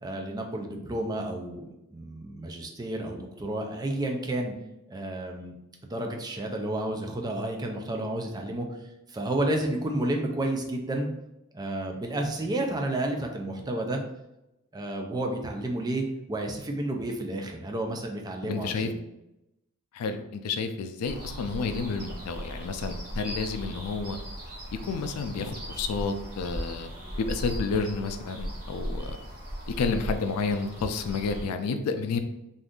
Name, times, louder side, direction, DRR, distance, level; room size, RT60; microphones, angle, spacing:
voice 1, 0.0-4.5 4.9-5.5 5.8-8.7 9.1-11.1 11.5-14.0 14.7-19.0, right 1 dB, 20° right, 2 dB, 0.4 m, -31 dB
voice 2, 18.4-18.9 19.9-24.2 24.8-26.9 27.2-29.2 29.7-32.2, left 4 dB, 85° left, 8 dB, 0.4 m, -30 dB
sound 1, 21.0-31.4, equal, 45° right, 1.0 m, -37 dB
2.6 x 2.4 x 3.5 m, 0.89 s
head